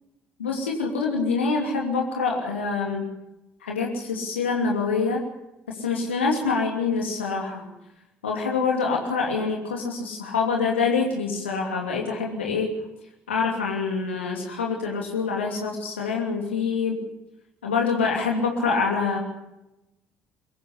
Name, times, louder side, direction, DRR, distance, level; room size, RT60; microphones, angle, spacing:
voice 1, 0.4-3.0 3.6-5.2 5.8-7.7 8.2-12.7 13.3-17.0 17.6-19.2, left 4 dB, 80° left, 0 dB, 2.8 m, -25 dB
22.5 x 14.5 x 8.0 m, 0.95 s
figure-of-eight pair, 50°, 6 cm